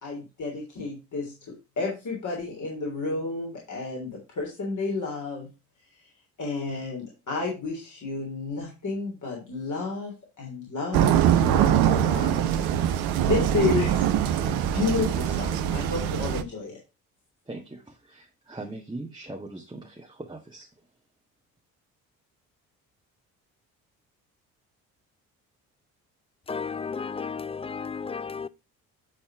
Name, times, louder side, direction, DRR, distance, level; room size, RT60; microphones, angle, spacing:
voice 1, 0.0-5.5 6.0-6.1 6.4-12.6 13.2-13.9 14.5-16.8, left 4 dB, 45° left, 3.4 m, -31 dB
sound 1, 10.9-16.4, right 10 dB, 65° right, 1.0 m, -23 dB
voice 2, 13.6-13.9 17.4-20.7, right 2 dB, 10° right, 1.6 m, -40 dB
voice 3, 26.5-28.5, left 5 dB, 15° left, 0.4 m, -33 dB
9.7 x 4.2 x 4.6 m
hypercardioid pair, 50°, 42 cm